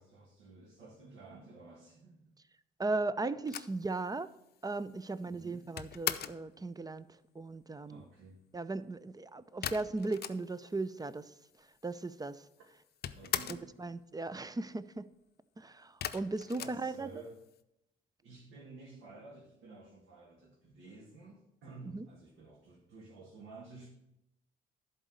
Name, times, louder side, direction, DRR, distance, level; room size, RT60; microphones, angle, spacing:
voice 1, 0.0-2.3 5.2-5.7 7.9-8.4 13.1-13.7 16.5-17.4 18.2-23.9, right 3 dB, 70° right, -3 dB, 2.2 m, -52 dB
voice 2, 2.8-4.3 4.6-7.1 7.3-8.0 8.5-11.3 11.8-12.4 13.5-15.1 15.6-17.1 21.9-22.0, right 3 dB, 20° right, 15 dB, 0.6 m, -37 dB
sound 1, 3.5-6.5 9.6-10.8 11.1-11.2 11.3-12.1 12.4-13.8 16.0-17.5, left 10 dB, 50° left, 0.6 m, -40 dB
11.0 x 4.2 x 7.8 m, 0.85 s
supercardioid pair, 60°, 20 cm